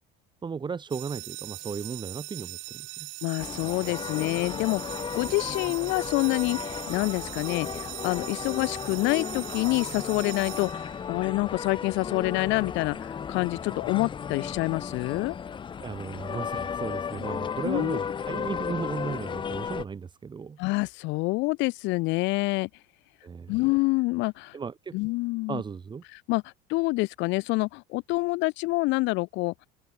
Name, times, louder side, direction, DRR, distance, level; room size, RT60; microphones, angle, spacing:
voice 1, 0.4-3.1 15.8-20.6 23.2-23.5 24.5-25.0 25.5-26.0, right 5 dB, 25° right, 2.9 m, -35 dB
sound 1, 0.9-11.3, right 32 dB, 75° right, 1.4 m, -40 dB
voice 2, 3.2-15.4 17.6-18.0 20.6-22.7 23.5-24.6 24.9-25.6 26.1-26.4 26.7-29.5, left 23 dB, 70° left, 2.2 m, -27 dB
sound 2, 3.4-19.8, left 7 dB, 25° left, 0.8 m, -35 dB
supercardioid pair, 120°, 20 cm